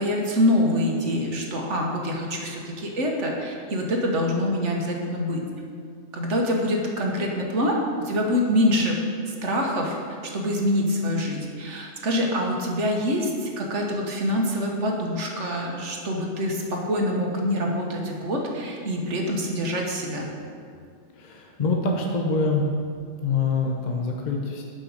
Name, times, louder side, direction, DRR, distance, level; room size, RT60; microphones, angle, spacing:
voice 1, 0.0-5.4 6.1-9.0 9.3-10.0 10.3-20.3, equal, 85° right, 0 dB, 1.6 m, -25 dB
voice 2, 21.1-22.7 23.2-24.6, left 3 dB, 40° left, 0 dB, 1.0 m, -25 dB
8.8 x 5.6 x 6.5 m, 2.2 s
omnidirectional pair, 1.2 m